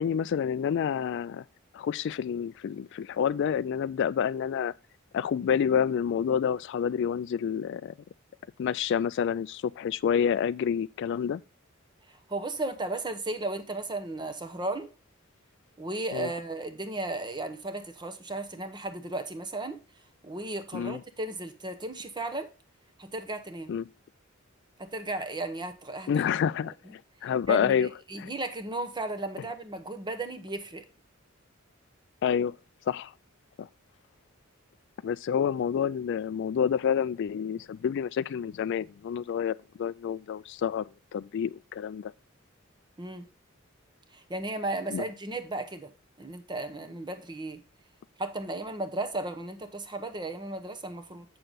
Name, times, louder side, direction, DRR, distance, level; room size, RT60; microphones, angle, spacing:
voice 1, 0.0-1.4 1.7-4.7 5.1-7.9 8.6-11.4 16.1-16.3 20.7-21.0 23.7-23.8 26.1-27.9 28.2-28.3 32.2-32.6 32.9-33.1 33.6-33.7 35.0-42.1 44.9-45.0, left 8 dB, 60° left, 0.3 m, -28 dB
voice 2, 12.1-14.9 15.8-19.8 20.2-22.5 23.0-23.8 24.8-26.1 26.9-27.0 27.5-30.9 43.0-43.3 44.1-45.9 46.2-47.6 48.2-51.2, right 2 dB, 20° right, 0.9 m, -35 dB
7.8 x 6.7 x 4.0 m
head